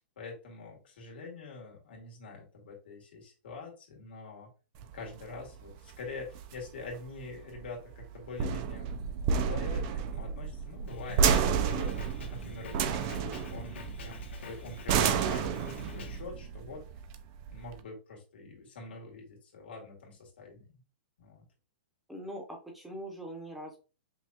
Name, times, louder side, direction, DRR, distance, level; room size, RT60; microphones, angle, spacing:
voice 1, 0.0-4.5 4.9-16.8 17.5-20.8 21.2-21.4, left 3 dB, 65° left, -1 dB, 1.9 m, -45 dB
sound 1, 4.8-17.8, right 6 dB, 30° right, 0.4 m, -31 dB
Drum kit, 10.9-16.2, left 3 dB, 85° left, 1.3 m, -46 dB
voice 2, 22.1-23.8, right 1 dB, ahead, 0 dB, 0.7 m, -42 dB
5.5 x 2.3 x 2.8 m, 0.33 s
hypercardioid pair, 170°, 6 cm